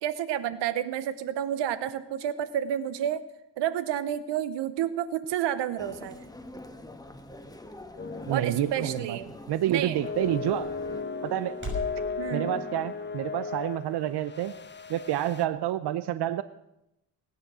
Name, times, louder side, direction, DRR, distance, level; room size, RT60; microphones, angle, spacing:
voice 1, 0.0-3.2 3.6-6.3 8.3-9.3 9.7-10.0 12.2-12.6, right 10 dB, 90° right, 14 dB, 1.0 m, -30 dB
sound 1, 5.7-12.0, left 1 dB, 30° right, 6.2 m, -45 dB
Human voice, 5.8-11.0, left 1 dB, 10° left, 1.5 m, -45 dB
sound 2, 8.0-8.8 9.1-9.3 10.0-15.5, left 5 dB, 25° left, 1.0 m, -36 dB
voice 2, 8.3-9.2 9.5-10.7 11.2-11.6 12.3-14.5 14.9-16.4, right 12 dB, 70° right, 14 dB, 0.7 m, -28 dB
18.5 x 9.5 x 6.2 m, 0.85 s
cardioid pair, 75°, 41 cm